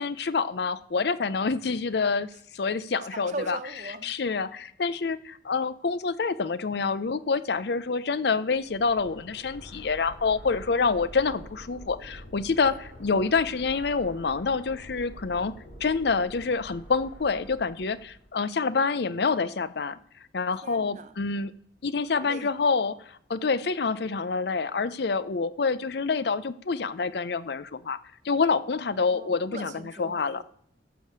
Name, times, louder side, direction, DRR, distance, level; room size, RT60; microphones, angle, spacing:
voice 1, 0.0-3.6 4.0-12.7 13.0-20.0 20.3-21.6 21.8-28.0 28.2-30.4, left 4 dB, 60° left, 16 dB, 0.5 m, -27 dB
voice 2, 3.1-4.1 12.7-12.8 20.6-21.1 22.1-22.5 29.1-30.4, right 2 dB, 40° right, 10 dB, 0.8 m, -39 dB
sound 1, 8.5-18.3, equal, 90° left, 5.3 m, -47 dB
13.5 x 5.0 x 6.6 m, 0.66 s
head